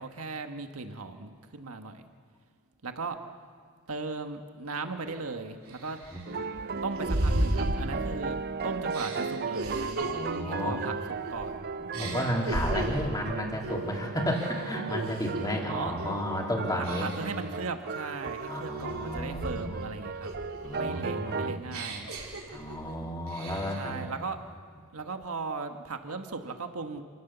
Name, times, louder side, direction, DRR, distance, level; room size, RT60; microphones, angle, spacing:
voice 1, 0.0-2.0 2.8-3.2 3.9-6.0 6.8-8.4 8.6-10.1 10.4-10.9 11.3-11.7 12.2-12.5 15.7-16.0 16.8-20.3 20.8-22.2 23.8-24.4 24.9-27.0, right 4 dB, 90° right, 6 dB, 1.5 m, -37 dB
sound 1, 5.1-5.2 5.7-8.4 8.9-11.5 11.9-13.2 13.6-13.9 14.3-15.6 16.0-16.3 16.8-17.4 17.9-19.9 20.2-22.9 23.3-23.9, right 1 dB, 75° right, 3.3 m, -35 dB
sound 2, 6.3-21.6, right 4 dB, 45° right, 0.5 m, -36 dB
voice 2, 10.0-10.8 12.0-17.1 18.4-19.8 20.6-21.5 22.5-24.0, equal, 20° left, -1 dB, 3.1 m, -32 dB
27.5 x 16.0 x 6.9 m, 2.1 s
head